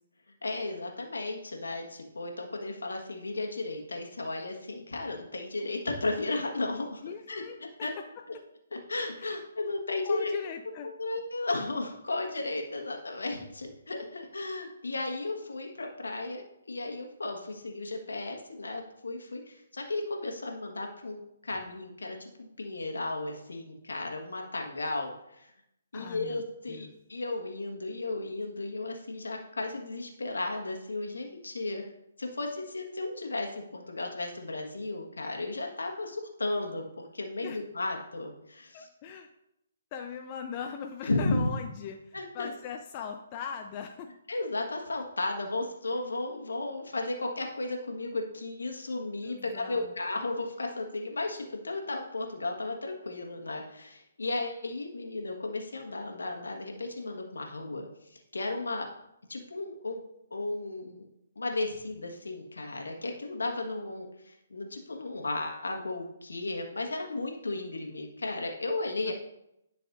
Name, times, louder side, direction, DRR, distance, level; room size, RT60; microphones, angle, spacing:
voice 1, 0.4-7.0 7.3-7.4 7.8-7.9 8.7-10.3 10.8-16.4 16.7-25.5 25.9-31.9 32.2-36.8 37.1-38.9 41.1-41.5 42.1-42.5 44.3-58.9 59.3-60.0 60.3-61.1 61.3-69.1, left 2 dB, 80° left, 2 dB, 1.5 m, -34 dB
voice 2, 7.0-7.9 9.2-9.4 10.1-10.9 25.9-26.4 26.7-26.9 37.4-37.6 38.7-39.3 39.9-44.1 49.2-49.9 69.1-69.2, left 7 dB, 35° left, 4 dB, 0.6 m, -40 dB
11.0 x 5.9 x 2.6 m, 0.83 s
figure-of-eight pair, 135°, 0 cm